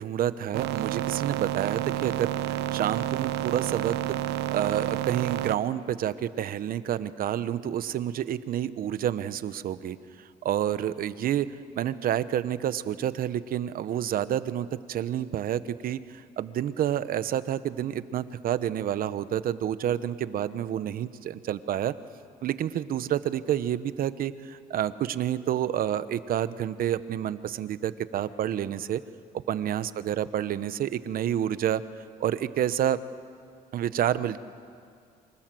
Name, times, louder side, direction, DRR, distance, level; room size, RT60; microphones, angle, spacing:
voice 1, 0.0-4.0 4.3-21.9 22.4-29.0 29.5-31.8 32.2-33.0 33.7-34.4, right 10 dB, 60° right, 14 dB, 1.1 m, -29 dB
sound 1, 0.5-5.5, right 14 dB, 85° right, 0.9 m, -30 dB
28.5 x 25.5 x 7.8 m, 2.3 s
cardioid pair, 110°, 17 cm